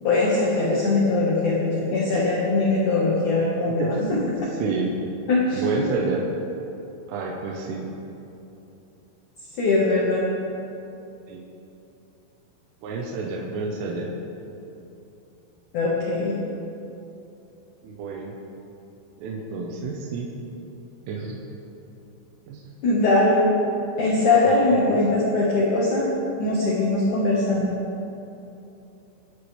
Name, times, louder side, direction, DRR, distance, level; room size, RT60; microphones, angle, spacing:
voice 1, 0.0-3.9 5.3-5.9 9.6-10.3 15.7-16.3 22.8-23.5 24.0-26.1 26.4-27.7, left 2 dB, 55° left, -5 dB, 2.3 m, -21 dB
voice 2, 3.7-5.0 5.5-6.2 7.1-7.9 11.3-11.4 12.8-14.1 17.8-18.4 19.2-20.3 21.1-21.4 22.5-22.6 24.7-25.0, right 3 dB, 85° right, -2 dB, 3.7 m, -29 dB
24.5 x 11.0 x 3.5 m, 2.9 s
omnidirectional pair, 5.6 m